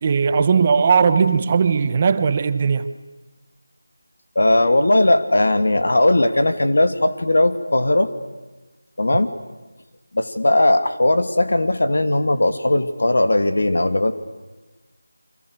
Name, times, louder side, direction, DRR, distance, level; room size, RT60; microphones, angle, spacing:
voice 1, 0.0-2.8, right 6 dB, 25° right, 11 dB, 0.9 m, -18 dB
voice 2, 4.4-8.1 9.0-9.3 10.1-14.1, left 1 dB, 65° left, 9 dB, 2.5 m, -18 dB
30.0 x 24.5 x 6.6 m, 1.1 s
figure-of-eight pair, 170°, 0 cm